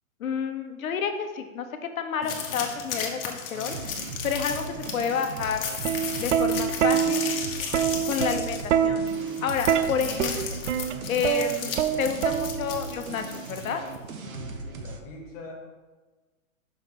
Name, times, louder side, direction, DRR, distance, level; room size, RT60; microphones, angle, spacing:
voice 1, 0.2-3.8 4.2-5.7 6.2-7.3 8.0-10.6 11.1-13.8, left 7 dB, 75° left, 7 dB, 1.1 m, -30 dB
sound 1, 2.2-14.0, left 6 dB, 40° left, 1.2 m, -35 dB
sound 2, 3.5-15.0, right 3 dB, 80° right, 1.3 m, -38 dB
Plucked string instrument, 5.6-12.9 14.0-14.3, right 9 dB, 60° right, 0.6 m, -26 dB
voice 2, 14.3-15.6, left 2 dB, 10° left, -3 dB, 0.4 m, -43 dB
5.8 x 5.4 x 5.9 m, 1.3 s
hypercardioid pair, 155°, 41 cm